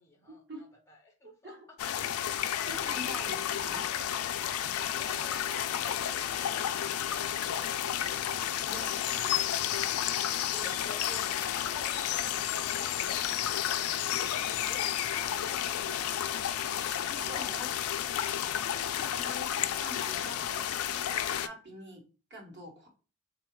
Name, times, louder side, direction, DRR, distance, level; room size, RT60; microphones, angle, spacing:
voice 1, 0.0-1.8 4.4-8.1 10.5-18.9, left 1 dB, 15° left, 1 dB, 0.5 m, -52 dB
voice 2, 1.2-1.7 2.6-3.8 8.7-9.4 10.6-10.8 17.1-18.0 18.7-20.6 20.9-22.0 22.3-22.9, equal, 50° right, 1 dB, 1.1 m, -45 dB
sound 1, 1.8-21.5, left 10 dB, 85° left, 0.3 m, -31 dB
3.6 x 2.3 x 4.5 m, 0.35 s
head